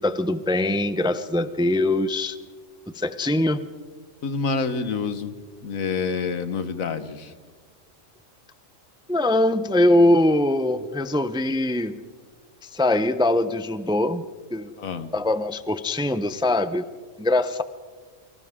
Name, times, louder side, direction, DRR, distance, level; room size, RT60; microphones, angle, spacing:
voice 1, 0.0-2.4 2.9-3.6 9.1-12.0 12.6-14.2 14.5-14.7 15.1-16.8 17.2-17.6, left 1 dB, 5° right, 11 dB, 0.5 m, -22 dB
voice 2, 4.2-5.3 5.6-7.3 14.8-15.1, left 4 dB, 80° left, 10 dB, 1.7 m, -27 dB
29.5 x 24.5 x 3.7 m, 1.5 s
omnidirectional pair, 1.4 m